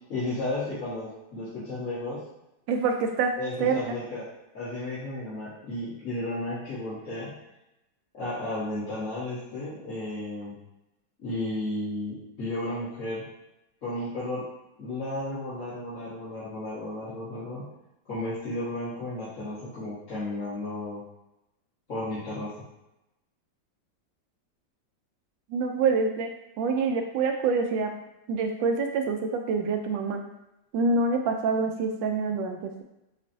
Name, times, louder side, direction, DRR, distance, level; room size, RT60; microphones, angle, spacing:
voice 1, 0.1-2.2 3.4-4.2 4.5-7.3 8.2-10.5 11.2-13.2 13.8-14.4 14.8-17.7 18.1-21.0 21.9-22.5, left 1 dB, 45° left, -14 dB, 1.9 m, -33 dB
voice 2, 2.7-3.3 3.6-3.8 25.5-26.3 26.6-27.9 28.3-30.2 30.7-32.8, right 4 dB, 90° right, 4 dB, 1.3 m, -26 dB
7.2 x 2.5 x 2.7 m, 0.91 s
omnidirectional pair, 2.0 m